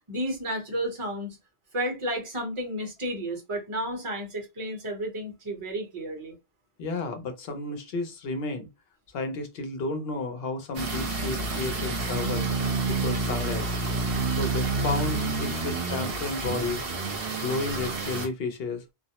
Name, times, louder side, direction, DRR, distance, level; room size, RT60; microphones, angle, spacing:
voice 1, 0.1-1.4 1.7-6.3, right 1 dB, 30° right, 0.9 m, -32 dB
voice 2, 6.8-8.7 9.1-12.5 12.9-13.6 14.2-16.8 17.3-18.8, left 3 dB, 70° left, 0.8 m, -32 dB
sound 1, 10.7-18.3, right 3 dB, 65° right, 0.9 m, -29 dB
2.4 x 2.0 x 2.8 m
omnidirectional pair, 1.1 m